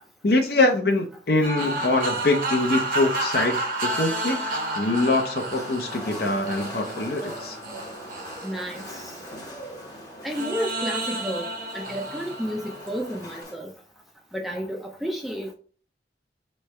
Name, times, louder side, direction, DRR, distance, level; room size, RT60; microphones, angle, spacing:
voice 1, 0.2-7.6, left 2 dB, 60° left, 0.6 m, -24 dB
sound 1, 1.4-9.7 10.3-13.4, right 1 dB, 50° right, 0.9 m, -31 dB
sound 2, 5.5-13.6, equal, 20° left, 0.9 m, -41 dB
voice 2, 8.4-9.1 10.2-11.5 11.7-13.7 14.3-15.5, equal, ahead, 0.4 m, -31 dB
3.2 x 3.1 x 4.5 m
head